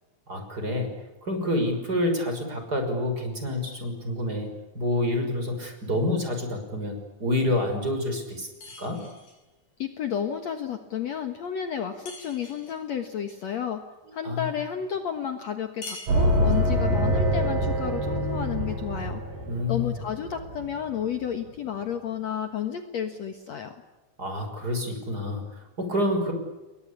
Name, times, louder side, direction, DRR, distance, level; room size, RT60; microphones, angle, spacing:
voice 1, 0.3-0.9 1.2-8.5 8.8-9.0 14.2-14.5 19.5-19.9 24.2-26.3, left 1 dB, 25° right, 5 dB, 6.3 m, -28 dB
sound 1, 8.6-9.4 12.1-12.8 15.8-16.7, left 3 dB, 75° left, 7.7 m, -43 dB
voice 2, 9.8-13.8 14.1-19.2 19.7-23.8, left 8 dB, 55° left, 7 dB, 2.4 m, -31 dB
sound 2, 16.1-20.8, equal, 70° right, 7.2 m, -25 dB
30.0 x 22.5 x 8.5 m, 1.1 s
omnidirectional pair, 4.1 m